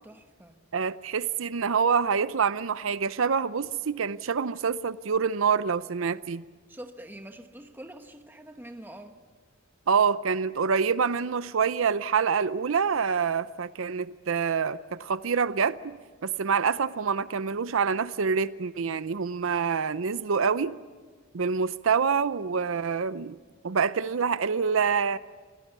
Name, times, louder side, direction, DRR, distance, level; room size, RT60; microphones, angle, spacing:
voice 1, 0.0-0.6 6.7-9.2, right 1 dB, 10° right, 6 dB, 1.1 m, -45 dB
voice 2, 0.7-6.4 9.9-20.8 21.3-23.4 23.6-25.2, right 6 dB, 80° right, 15 dB, 0.6 m, -26 dB
27.0 x 18.0 x 8.3 m, 1.4 s
head